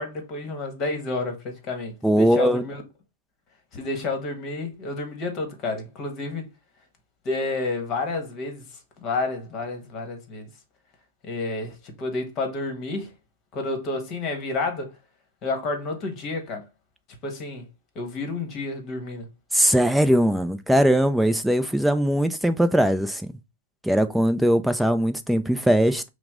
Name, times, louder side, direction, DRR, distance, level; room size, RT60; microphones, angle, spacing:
voice 1, 0.0-2.8 3.7-6.5 7.2-8.7 9.0-10.5 11.2-13.1 13.5-14.9 15.4-16.6 17.2-17.7 17.9-19.3, left 3 dB, 35° left, 1.3 m, -30 dB
voice 2, 2.0-2.6 19.5-23.3 23.8-26.1, equal, ahead, 0.5 m, -20 dB
5.8 x 2.1 x 3.7 m
hypercardioid pair, 125°, 0 cm